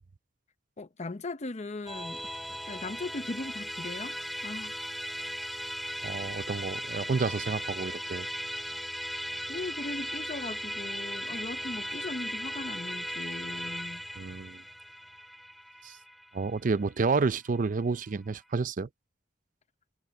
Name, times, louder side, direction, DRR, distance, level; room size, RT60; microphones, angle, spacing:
voice 1, 0.8-4.8 9.5-14.0, left 2 dB, 40° left, 0.7 m, -39 dB
Musical instrument, 1.9-17.4, equal, ahead, 2.8 m, -37 dB
voice 2, 6.0-8.3 14.2-14.6 15.8-16.0 16.3-18.9, right 4 dB, 45° right, 0.5 m, -30 dB
head